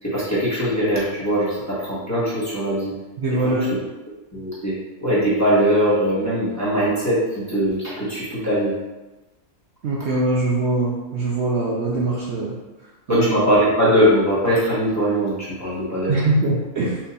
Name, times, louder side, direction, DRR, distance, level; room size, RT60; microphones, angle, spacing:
voice 1, 0.0-3.0 3.4-3.6 4.3-4.7 5.0-8.8 13.1-16.2, equal, 15° left, -9 dB, 1.0 m, -21 dB
voice 2, 3.2-3.7 9.8-12.6 13.1-13.3 16.1-17.0, right 2 dB, 60° right, -4 dB, 0.8 m, -22 dB
4.4 x 2.5 x 4.0 m, 1.1 s
omnidirectional pair, 1.5 m